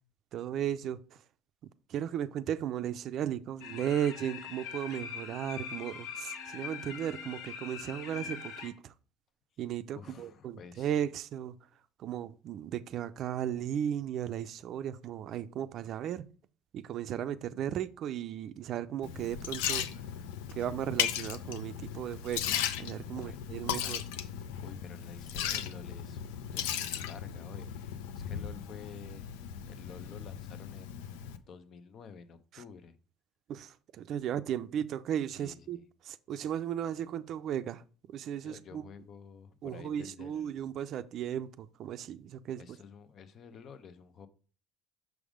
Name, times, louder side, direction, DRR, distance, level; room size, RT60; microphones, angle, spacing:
voice 1, 0.3-1.2 1.9-8.9 9.6-11.6 12.0-16.2 16.7-19.9 20.5-24.0 32.5-32.6 33.5-35.8 36.0-37.8 38.1-38.8 39.6-42.6, right 10 dB, 55° right, 0.4 m, -35 dB
sound 1, 3.6-8.7, left 7 dB, 70° left, 1.4 m, -42 dB
voice 2, 9.9-10.9 23.1-23.4 23.8-24.0 24.3-29.3 29.7-31.2 31.5-32.9 35.4-35.8 38.4-40.5 42.6-44.3, left 6 dB, 50° left, 0.7 m, -50 dB
Liquid, 19.0-31.4, left 9 dB, 85° left, 0.5 m, -37 dB
6.2 x 3.5 x 4.9 m
supercardioid pair, 90°, 0 cm